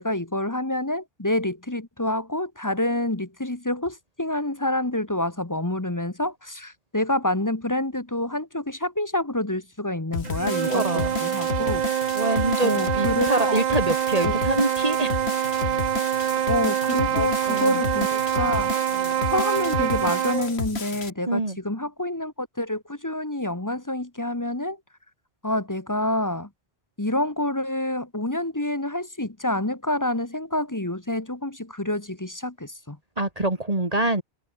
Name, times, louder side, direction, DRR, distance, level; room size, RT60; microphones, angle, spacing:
voice 1, 0.0-10.8 11.2-11.8 12.6-13.6 14.2-14.4 16.5-18.7 19.3-24.8 25.4-26.5 27.0-33.0, left 1 dB, 20° left, 1.3 m, -27 dB
sound 1, 10.1-21.1, left 4 dB, 75° left, 2.1 m, -32 dB
sound 2, 10.2-20.5, right 10 dB, 55° right, 0.5 m, -25 dB
voice 2, 10.6-11.2 12.1-15.1 17.1-17.8 18.9-19.2 21.3-21.6 33.2-34.2, right 2 dB, 35° right, 3.3 m, -25 dB
omnidirectional pair, 1.1 m